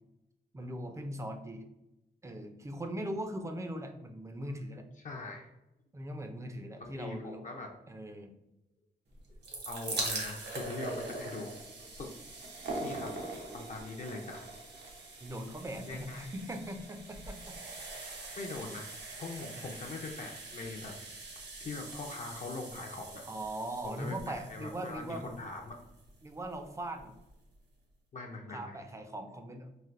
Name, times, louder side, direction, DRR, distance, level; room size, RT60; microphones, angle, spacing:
voice 1, 0.5-1.6 2.2-4.8 5.9-7.5 7.9-8.3 15.2-17.6 19.6-19.7 23.3-25.3 26.2-27.2 28.5-29.7, right 1 dB, 15° right, 6 dB, 0.4 m, -40 dB
voice 2, 5.0-5.5 6.8-7.7 9.3-11.5 11.8-12.1 12.8-13.1 13.5-14.5 15.9-16.3 18.4-20.9 21.6-23.2 23.8-25.8 28.1-28.8, left 3 dB, 45° left, 1 dB, 0.4 m, -42 dB
sound 1, 9.2-26.2 27.0-27.1 27.3-27.4, right 2 dB, 85° right, 0.8 m, -42 dB
3.2 x 2.5 x 2.5 m, 0.91 s
wide cardioid pair, 100°, 17 cm